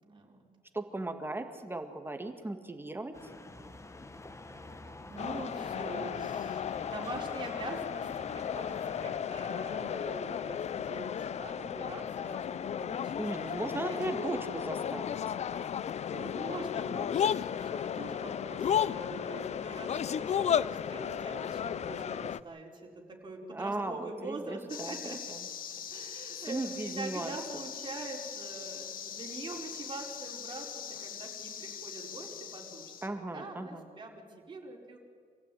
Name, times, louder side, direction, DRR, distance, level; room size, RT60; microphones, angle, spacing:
voice 1, 0.0-0.5 5.1-14.2 16.1-25.3 25.7-35.0, right 3 dB, 30° right, 0 dB, 4.6 m, -44 dB
voice 2, 0.7-3.3 13.2-15.2 23.5-25.4 26.3-27.4 33.0-33.8, right 2 dB, 15° right, 6 dB, 1.9 m, -37 dB
sound 1, 3.1-9.1, left 2 dB, 20° left, 1.5 m, -49 dB
sound 2, 5.2-22.4, left 8 dB, 50° left, 0.5 m, -34 dB
sound 3, 24.7-33.1, left 8 dB, 70° left, 1.7 m, -42 dB
26.0 x 16.0 x 9.2 m, 2.2 s
cardioid pair, 120°, 15 cm